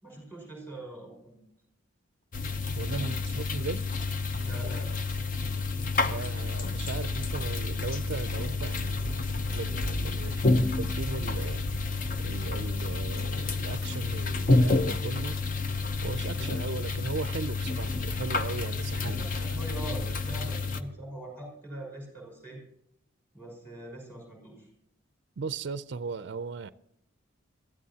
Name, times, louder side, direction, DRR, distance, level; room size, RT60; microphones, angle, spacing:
voice 1, 0.0-1.4 4.4-5.0 19.0-22.6 23.3-24.7, right 1 dB, 10° left, 5.3 m, -43 dB
sound 1, 2.3-20.8, left 3 dB, 40° left, 0.7 m, -29 dB
voice 2, 2.7-3.8 6.1-9.1 9.5-11.6 12.2-15.4 16.0-19.6 25.4-26.7, right 4 dB, 55° right, 0.4 m, -37 dB
22.5 x 13.5 x 2.8 m
head